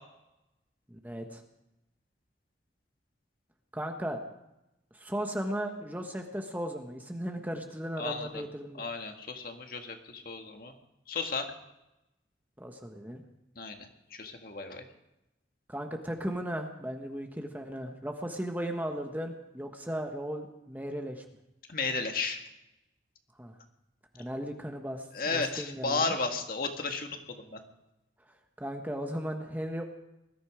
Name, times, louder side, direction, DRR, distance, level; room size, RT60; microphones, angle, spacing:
voice 1, 0.9-1.4 3.7-4.2 4.9-8.8 12.6-13.2 15.7-21.2 23.4-23.5 24.1-26.1 28.6-29.8, equal, 10° right, 4 dB, 1.3 m, -36 dB
voice 2, 8.0-8.3 8.8-10.7 11.1-11.5 13.6-13.7 14.1-14.8 21.7-22.4 25.1-27.6, left 4 dB, 50° left, 4 dB, 1.8 m, -33 dB
20.5 x 13.5 x 5.0 m, 0.91 s
head